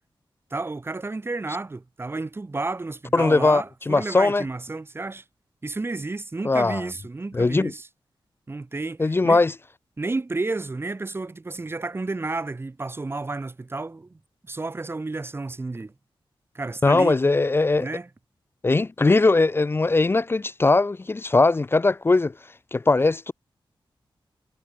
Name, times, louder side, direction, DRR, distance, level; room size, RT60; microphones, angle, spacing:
voice 1, 0.5-5.2 5.6-7.9 8.5-9.4 10.0-14.2 14.5-15.9 16.5-17.2 17.8-18.1, right 3 dB, 25° right, 2.0 m, -31 dB
voice 2, 3.1-4.4 6.4-6.8 7.3-7.7 9.0-9.5 16.8-17.9 18.6-22.3 22.7-23.3, left 3 dB, 25° left, 0.5 m, -20 dB
wide cardioid pair, 135°, 9 cm